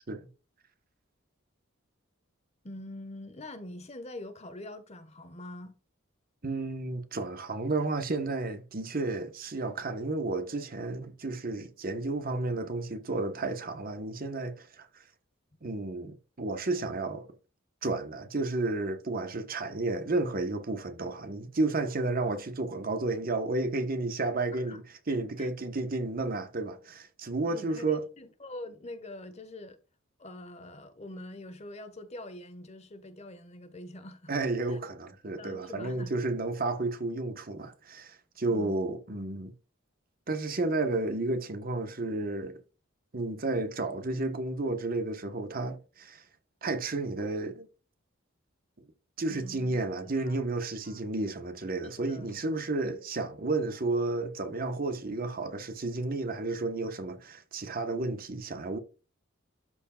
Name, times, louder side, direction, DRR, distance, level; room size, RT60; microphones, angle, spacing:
voice 1, 2.6-5.8 24.7-24.8 25.4-25.5 27.4-29.8 30.2-34.3 34.7-34.8 35.4-36.1 38.5-38.8 49.3-50.4 50.8-51.0 52.0-52.4, left 1 dB, 35° left, 1.2 m, -44 dB
voice 2, 6.4-15.0 15.6-17.3 17.8-28.0 34.3-39.5 40.3-42.6 43.1-46.2 46.6-47.7 49.2-58.8, right 2 dB, 45° right, 1.0 m, -32 dB
13.0 x 4.6 x 2.3 m
head